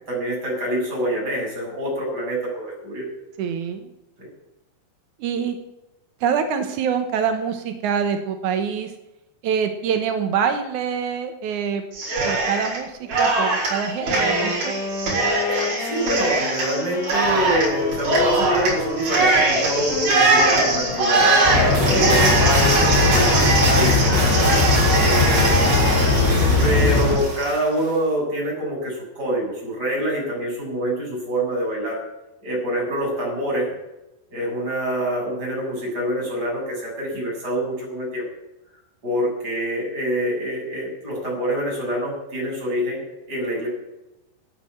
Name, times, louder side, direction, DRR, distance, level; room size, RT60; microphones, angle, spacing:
voice 1, 0.1-3.1 4.2-4.3 15.6-24.2 25.0-26.1 26.6-32.0 32.4-33.7 34.3-38.3 39.0-43.0 43.3-43.7, equal, 20° right, -3 dB, 7.3 m, -26 dB
voice 2, 3.4-3.9 5.2-5.6 6.2-8.9 9.4-11.8 12.2-14.8, right 7 dB, 85° right, 7 dB, 1.7 m, -25 dB
Cheering, 11.9-12.8 13.1-27.6, right 3 dB, 55° right, 6.7 m, -21 dB
Wind instrument woodwind instrument, 14.0-20.1 20.6-23.3, left 4 dB, 40° left, 5.0 m, -30 dB
sound 1, 21.4-27.2, left 4 dB, 75° left, 6.4 m, -19 dB
13.0 x 9.8 x 8.9 m, 0.95 s
omnidirectional pair, 5.4 m